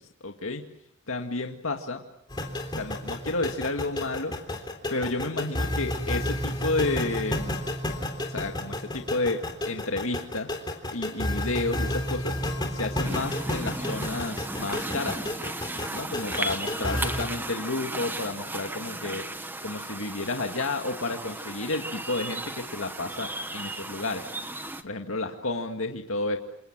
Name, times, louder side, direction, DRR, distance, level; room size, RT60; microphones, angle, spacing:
voice 1, 0.2-0.6 1.1-2.0 2.8-4.6 4.9-7.6 8.3-10.5 10.9-12.4 12.7-15.2 15.9-24.3 24.8-26.4, left 2 dB, 80° left, 3 dB, 2.1 m, -31 dB
sound 1, 2.3-17.2, left 1 dB, 20° left, 3.7 m, -31 dB
sound 2, 13.0-24.8, right 2 dB, 10° right, 1.2 m, -35 dB
28.0 x 27.5 x 7.5 m, 0.77 s
head